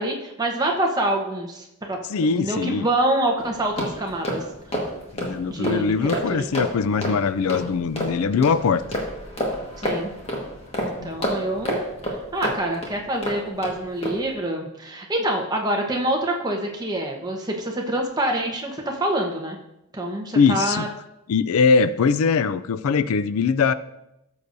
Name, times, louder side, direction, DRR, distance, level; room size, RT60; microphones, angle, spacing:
voice 1, 0.0-2.0 2.3-4.4 5.5-6.5 9.8-10.1 10.8-19.6 19.9-20.9, right 1 dB, 15° right, 1 dB, 1.0 m, -26 dB
voice 2, 2.1-2.9 5.1-8.8 11.0-11.1 20.3-20.9 21.3-23.7, left 5 dB, 70° left, 14 dB, 0.4 m, -21 dB
sound 1, 3.4-13.7 14.0-14.3, equal, 25° left, 1.5 m, -30 dB
14.0 x 6.9 x 2.6 m, 0.86 s
head